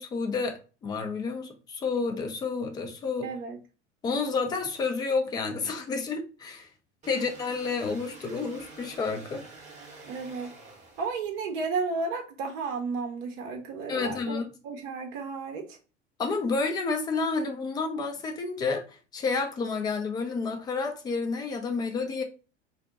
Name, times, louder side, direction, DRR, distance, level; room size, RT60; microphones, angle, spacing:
voice 1, 0.0-3.3 4.0-6.7 7.1-9.5 13.9-14.5 16.2-22.2, left 4 dB, 10° left, 0.3 m, -30 dB
voice 2, 3.2-3.6 7.1-7.2 10.0-10.5 11.0-15.8, right 4 dB, 50° right, 0.7 m, -33 dB
sound 1, 7.0-11.6, right 3 dB, 20° right, 0.8 m, -48 dB
2.7 x 2.1 x 3.6 m
figure-of-eight pair, 75°, 37 cm